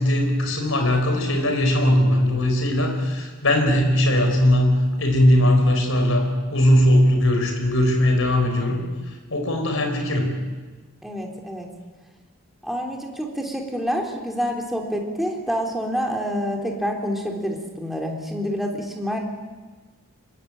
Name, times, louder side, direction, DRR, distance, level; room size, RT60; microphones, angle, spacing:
voice 1, 0.0-8.8 9.1-10.3, left 1 dB, 65° left, 4 dB, 5.2 m, -19 dB
voice 2, 11.0-11.7 12.6-19.2, equal, ahead, 1 dB, 3.7 m, -27 dB
25.0 x 22.5 x 9.0 m, 1.3 s
head